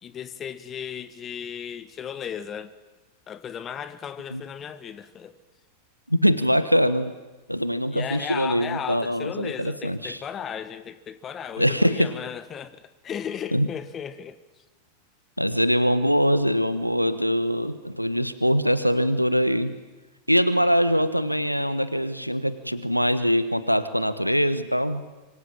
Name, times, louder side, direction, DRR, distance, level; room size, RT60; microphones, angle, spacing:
voice 1, 0.0-2.7 3.3-5.4 7.9-14.4, left 8 dB, 25° left, 1.6 m, -35 dB
voice 2, 6.1-7.1 7.5-10.2 11.6-12.1 13.5-13.7 15.4-19.7 20.3-25.0, equal, 90° left, 1.3 m, -23 dB
26.0 x 24.5 x 8.9 m
figure-of-eight pair, 90°, 0 cm